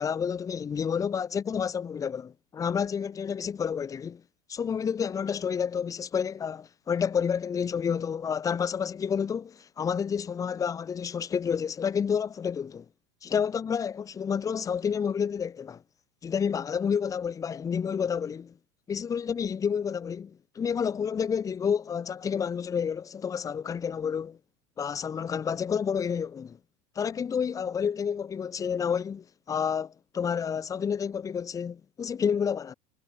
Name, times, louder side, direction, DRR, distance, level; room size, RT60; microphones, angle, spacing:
voice 1, 0.0-4.2 4.5-12.8 13.2-15.8 16.2-18.5 18.9-24.4 24.8-26.6 26.9-32.7, left 7 dB, 20° left, 1.1 m, -29 dB
supercardioid pair, 140°, 18 cm